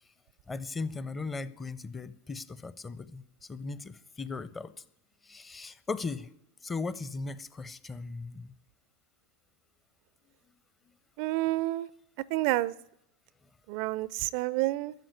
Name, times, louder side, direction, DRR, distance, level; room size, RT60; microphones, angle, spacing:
voice 1, 0.5-3.2 3.5-4.7 5.2-6.3 6.6-8.5, left 4 dB, 15° left, 16 dB, 0.7 m, -37 dB
voice 2, 11.2-11.9 12.3-12.7 13.7-14.9, right 18 dB, 50° right, 21 dB, 0.4 m, -29 dB
13.5 x 7.6 x 8.3 m, 0.76 s
figure-of-eight pair, 90°, 0 cm